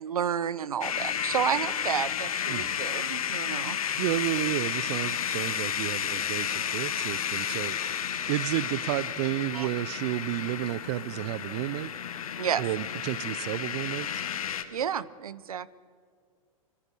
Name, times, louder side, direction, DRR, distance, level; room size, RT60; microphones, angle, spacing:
voice 1, 0.0-4.1 9.5-9.7 12.4-12.6 14.7-15.7, right 8 dB, 80° right, 20 dB, 0.9 m, -31 dB
sound 1, 0.8-14.6, left 8 dB, 75° left, 1.7 m, -32 dB
voice 2, 4.0-11.9 12.6-14.2, right 18 dB, 50° right, 21 dB, 0.5 m, -32 dB
25.0 x 21.5 x 6.2 m, 2.1 s
hypercardioid pair, 110°, 18 cm